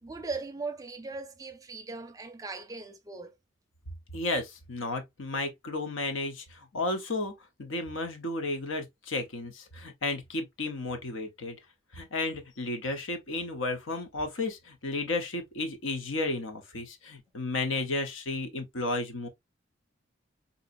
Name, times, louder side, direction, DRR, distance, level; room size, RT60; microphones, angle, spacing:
voice 1, 0.0-3.4, right 3 dB, 20° right, 0.5 m, -39 dB
voice 2, 4.1-7.3 7.6-11.6 11.9-19.3, left 2 dB, 85° left, 0.9 m, -33 dB
3.9 x 2.8 x 2.5 m
head